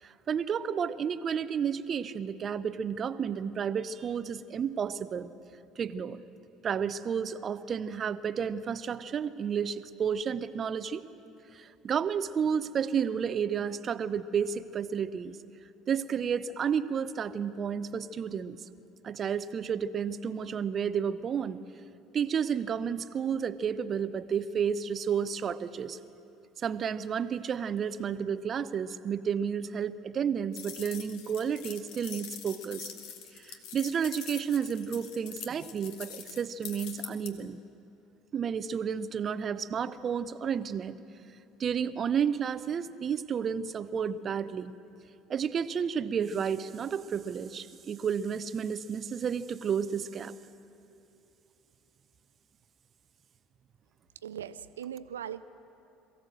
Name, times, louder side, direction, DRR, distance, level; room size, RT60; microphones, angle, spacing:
voice 1, 0.0-5.3 5.8-6.2 6.6-11.0 11.5-15.4 15.9-18.6 19.0-21.6 22.1-26.0 26.6-32.9 33.3-37.6 38.3-41.0 41.6-44.7 45.3-50.4, right 7 dB, 40° right, 14 dB, 0.7 m, -31 dB
sound 1, 30.5-37.3, left 8 dB, 60° left, 1.6 m, -44 dB
voice 2, 54.2-55.4, right 9 dB, 80° right, 14 dB, 0.4 m, -39 dB
22.5 x 15.5 x 7.7 m, 2.8 s
figure-of-eight pair, 60°, 0 cm